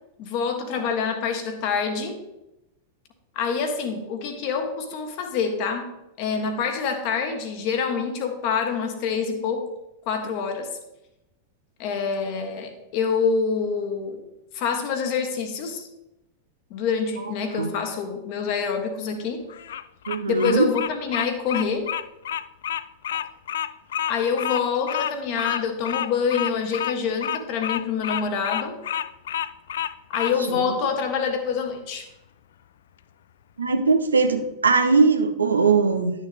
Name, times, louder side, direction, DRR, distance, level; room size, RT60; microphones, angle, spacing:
voice 1, 0.2-2.2 3.3-5.9 6.2-9.7 10.1-10.7 11.8-14.2 14.5-15.8 16.7-19.4 20.3-21.9 24.1-28.8 30.1-32.1, left 6 dB, 45° left, 5 dB, 1.5 m, -26 dB
Bird vocalization bird call bird song, 19.5-30.4, left 10 dB, 60° left, 0.3 m, -29 dB
voice 2, 20.1-20.7 30.5-30.7 33.6-36.1, right 4 dB, 75° right, 7 dB, 0.8 m, -20 dB
11.5 x 6.8 x 3.5 m, 0.92 s
figure-of-eight pair, 90°, 0 cm